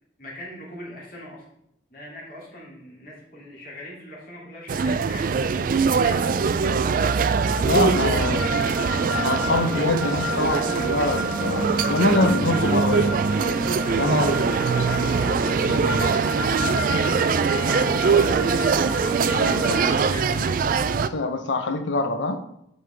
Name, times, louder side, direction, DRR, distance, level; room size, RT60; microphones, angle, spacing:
voice 1, 0.2-1.4 1.9-5.2 5.7-7.1 8.0-8.7 14.0-18.6 19.4-20.5, left 1 dB, 50° left, -4 dB, 2.7 m, -39 dB
sound 1, 4.7-21.1, right 5 dB, 50° right, 0.3 m, -22 dB
sound 2, 7.1-19.9, equal, ahead, 2.9 m, -30 dB
voice 2, 7.6-8.4 9.1-13.2 14.0-14.3 19.3-19.8 21.0-22.4, left 2 dB, 80° left, 8 dB, 0.8 m, -24 dB
9.4 x 5.3 x 3.4 m, 0.77 s
head